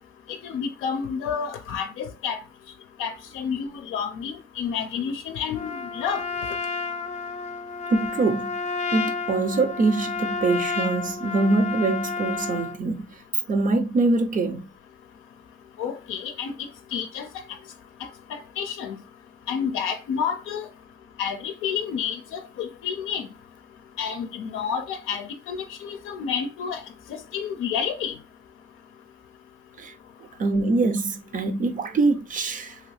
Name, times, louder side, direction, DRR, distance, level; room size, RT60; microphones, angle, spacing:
voice 1, 0.3-2.4 3.0-6.2 15.8-16.5 16.9-17.3 18.0-19.0 19.5-20.7 21.2-23.3 24.0-26.8 27.3-28.2, left 7 dB, 85° left, 0.5 m, -30 dB
Trumpet, 5.5-12.8, left 4 dB, 35° left, 0.7 m, -31 dB
voice 2, 7.9-8.5 8.9-13.1 13.5-14.6 29.8-29.9 30.4-32.8, right 3 dB, 40° right, 0.5 m, -23 dB
2.8 x 2.4 x 3.2 m
cardioid pair, 90°, 20 cm